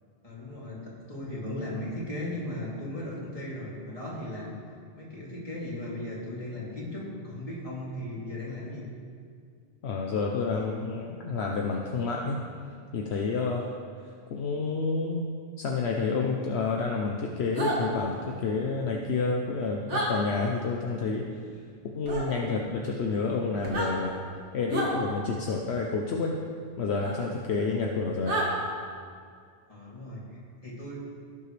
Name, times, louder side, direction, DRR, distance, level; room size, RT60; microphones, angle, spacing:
voice 1, 0.2-4.6 4.9-8.8 29.7-31.0, left 1 dB, 30° left, -7 dB, 2.9 m, -37 dB
voice 2, 9.8-12.4 12.9-13.7 14.3-21.3 21.9-24.2 24.5-26.4 26.8-28.4, left 4 dB, 70° left, 0 dB, 1.0 m, -29 dB
sound 1, 17.5-17.8 19.9-20.1 22.0-22.2 23.6-23.9 24.7-24.9 27.0-27.1 28.2-28.5, right 1 dB, 90° right, 2.2 m, -29 dB
17.0 x 7.4 x 3.3 m, 2.2 s
omnidirectional pair, 1.1 m